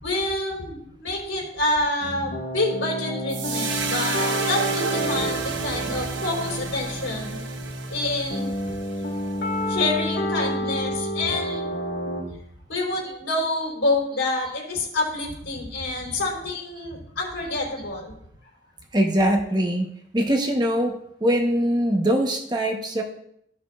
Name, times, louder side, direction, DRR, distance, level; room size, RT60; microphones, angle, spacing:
voice 1, 0.0-7.4 7.9-8.5 9.7-11.6 12.7-18.1, left 2 dB, 85° left, -3 dB, 3.8 m, -27 dB
sound 1, 2.0-12.2, equal, 65° left, 1.6 m, -29 dB
sound 2, 3.3-9.7, right 5 dB, 80° right, 1.1 m, -31 dB
voice 2, 18.9-19.9 20.1-23.0, right 1 dB, 20° right, 2 dB, 1.0 m, -23 dB
15.0 x 6.3 x 2.5 m, 0.73 s
head